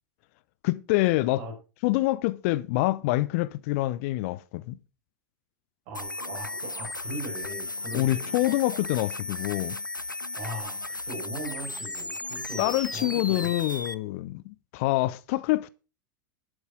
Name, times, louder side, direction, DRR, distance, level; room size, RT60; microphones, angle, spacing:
voice 1, 0.6-1.4 1.8-4.8 7.9-9.8 12.6-15.7, left 18 dB, 45° left, 0.5 m, -26 dB
sound 1, 5.9-13.9, left 2 dB, 90° left, 0.5 m, -35 dB
voice 2, 5.9-8.4 10.4-13.5, right 1 dB, 45° right, 5.1 m, -39 dB
11.5 x 8.0 x 5.2 m
figure-of-eight pair, 85°, 10 cm